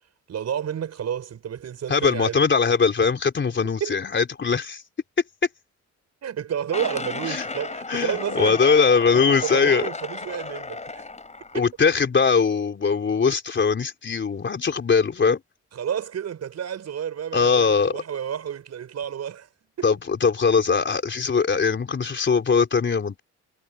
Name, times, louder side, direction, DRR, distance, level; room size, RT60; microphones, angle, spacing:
voice 1, 0.3-2.4 3.8-4.0 6.2-8.6 9.4-11.1 11.5-11.7 15.7-19.5 19.8-19.9, right 9 dB, 60° right, 6.1 m, -30 dB
voice 2, 1.9-4.8 7.3-7.4 7.9-9.9 11.5-15.4 17.3-18.0 19.8-23.2, left 5 dB, 40° left, 3.8 m, -21 dB
sound 1, 6.7-11.7, left 3 dB, 25° left, 3.9 m, -34 dB
cardioid pair, 90°, 30 cm